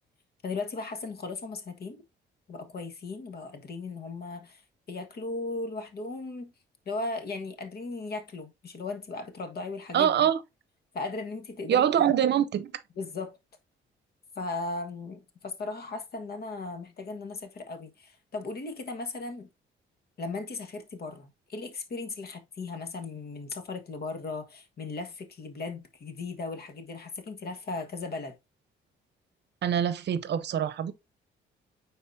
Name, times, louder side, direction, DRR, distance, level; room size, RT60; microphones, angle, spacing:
voice 1, 0.4-2.0 2.5-4.6 4.9-6.5 6.8-10.3 10.9-12.1 13.0-13.4 14.3-19.5 20.2-28.3, left 3 dB, 50° left, 1.5 m, -37 dB
voice 2, 9.9-10.4 11.7-12.7 29.6-30.9, right 9 dB, 60° right, 0.7 m, -24 dB
9.3 x 4.1 x 2.7 m
cardioid pair, 90°, 20 cm